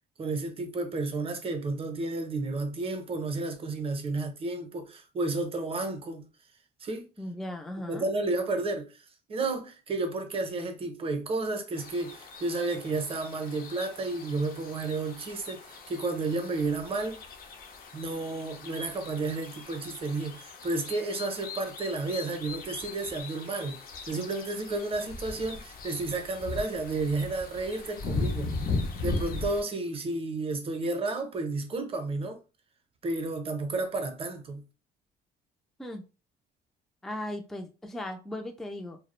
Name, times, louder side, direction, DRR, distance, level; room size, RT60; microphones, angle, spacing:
voice 1, 0.2-6.3 6.8-7.1 7.9-8.9 9.3-17.2 17.9-23.8 24.1-28.5 29.0-32.4 33.0-34.6, right 3 dB, 35° right, 0.6 m, -32 dB
voice 2, 7.2-8.1 35.8-36.1 37.0-39.0, left 1 dB, ahead, 0.3 m, -37 dB
sound 1, 11.8-29.6, left 3 dB, 60° left, 0.6 m, -38 dB
2.3 x 2.1 x 3.0 m
cardioid pair, 110°, 17 cm